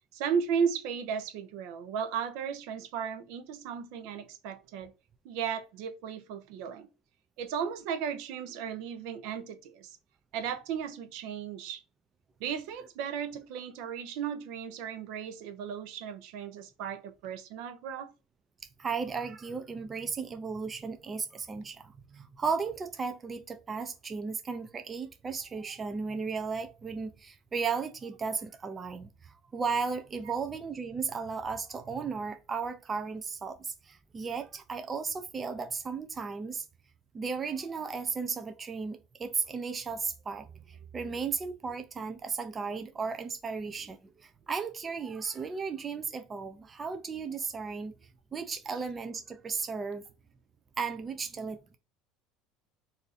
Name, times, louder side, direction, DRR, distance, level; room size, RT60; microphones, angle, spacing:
voice 1, 0.1-4.9 5.2-6.9 7.4-9.9 10.3-11.8 12.4-18.1, right 7 dB, 70° right, 0.6 m, -35 dB
voice 2, 18.8-36.7 37.1-47.9 48.3-50.0 50.8-51.8, right 5 dB, 25° right, 0.4 m, -35 dB
2.7 x 2.5 x 4.0 m
supercardioid pair, 100°, 0 cm